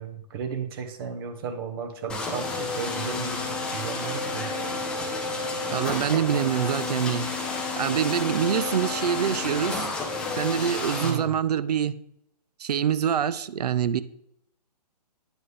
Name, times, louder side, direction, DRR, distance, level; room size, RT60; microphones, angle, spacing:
voice 1, 0.0-4.5 11.0-11.3, right 6 dB, 35° right, 0.9 m, -34 dB
sound 1, 2.1-11.1, left 3 dB, 5° left, 0.4 m, -30 dB
voice 2, 5.7-7.3 7.8-9.9 10.3-12.0 12.6-14.0, right 8 dB, 70° right, 0.4 m, -25 dB
9.6 x 4.0 x 3.3 m
hypercardioid pair, 140°, 21 cm